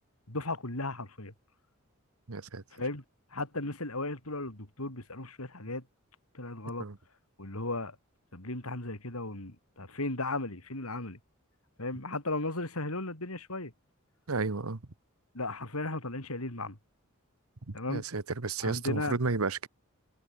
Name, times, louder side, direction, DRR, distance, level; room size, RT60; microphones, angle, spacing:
voice 1, 0.3-1.3 2.7-3.0 3.3-5.8 6.3-6.9 7.4-8.0 8.3-11.2 11.8-13.7 15.3-16.8 17.7-18.0 18.6-19.2, left 2 dB, 85° left, 5.0 m, -36 dB
voice 2, 2.3-2.6 6.8-7.0 14.3-14.8 17.7-19.7, right 3 dB, 80° right, 1.3 m, -32 dB
head